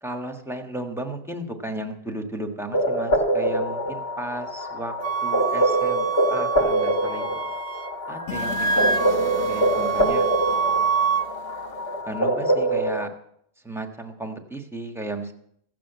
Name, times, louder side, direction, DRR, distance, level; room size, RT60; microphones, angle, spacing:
voice 1, 0.0-5.0 5.2-7.4 8.1-10.3 12.0-13.1 13.6-15.3, right 1 dB, ahead, 4 dB, 1.3 m, -34 dB
sound 1, 2.7-13.1, right 1 dB, 65° left, 1.6 m, -24 dB
Wind instrument woodwind instrument, 5.0-7.9 8.2-11.3, right 6 dB, 45° right, 0.5 m, -26 dB
sound 2, 8.3-12.2, left 6 dB, 85° left, 1.4 m, -39 dB
15.0 x 7.5 x 8.1 m, 0.72 s
omnidirectional pair, 1.1 m